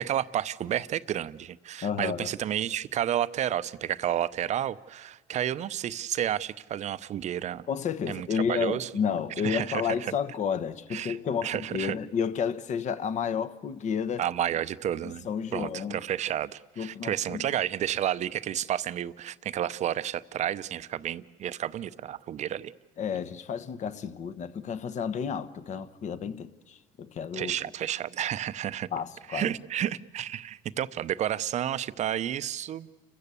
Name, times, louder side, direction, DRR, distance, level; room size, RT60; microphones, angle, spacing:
voice 1, 0.0-7.6 8.1-8.9 9.4-10.1 10.9-11.2 11.4-12.0 14.2-15.3 15.5-22.7 27.3-28.9 29.3-32.9, right 11 dB, 50° right, 0.7 m, -31 dB
voice 2, 1.8-2.3 7.7-14.2 15.0-16.0 16.8-17.5 23.0-27.5 28.9-29.5, left 7 dB, 50° left, 1.2 m, -31 dB
30.0 x 14.0 x 8.4 m
supercardioid pair, 95°, 15 cm